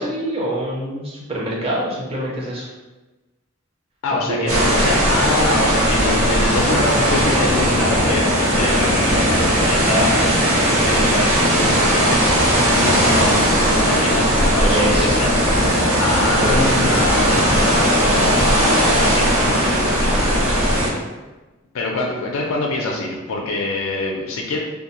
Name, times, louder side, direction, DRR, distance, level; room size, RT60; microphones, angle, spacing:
voice 1, 0.0-2.7 4.1-4.9 14.6-15.1 16.2-16.6, right 1 dB, 30° right, -3 dB, 0.5 m, -25 dB
voice 2, 4.0-10.2 10.9-12.2 12.7-20.6 20.8-21.0 21.7-24.6, left 2 dB, 80° left, -1 dB, 0.4 m, -25 dB
sound 1, 4.5-20.9, equal, 85° right, 0.9 m, -17 dB
2.6 x 2.1 x 2.9 m, 1.1 s
head